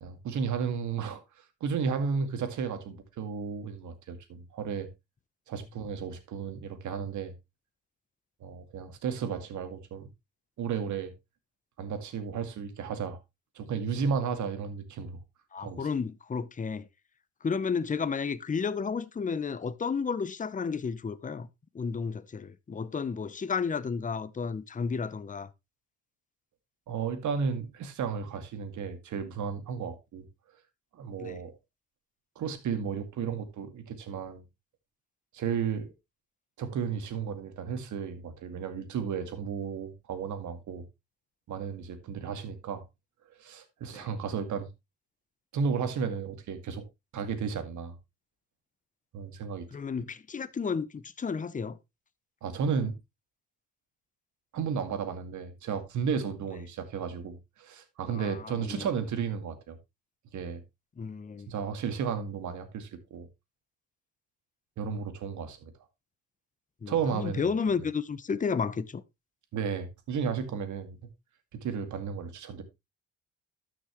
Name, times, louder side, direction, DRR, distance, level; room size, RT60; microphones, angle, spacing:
voice 1, 0.0-4.9 5.5-7.3 8.4-10.1 10.6-11.1 11.8-13.2 13.5-15.2 15.6-15.9 26.9-30.2 30.9-31.5 32.4-34.4 35.3-35.9 36.6-40.8 41.5-42.8 43.4-44.7 45.5-46.8 47.1-48.0 49.1-49.6 52.4-52.9 54.5-59.8 60.3-60.6 61.5-63.3 64.8-65.7 66.9-67.5 69.5-71.0 71.6-72.6, right 6 dB, 70° right, 2.2 m, -33 dB
voice 2, 15.5-16.9 17.4-21.5 21.7-25.5 31.2-31.4 43.9-44.0 49.7-51.8 58.1-58.9 61.0-61.5 66.8-69.0, left 5 dB, 25° left, 0.8 m, -32 dB
13.0 x 6.1 x 3.1 m
cardioid pair, 90°, 30 cm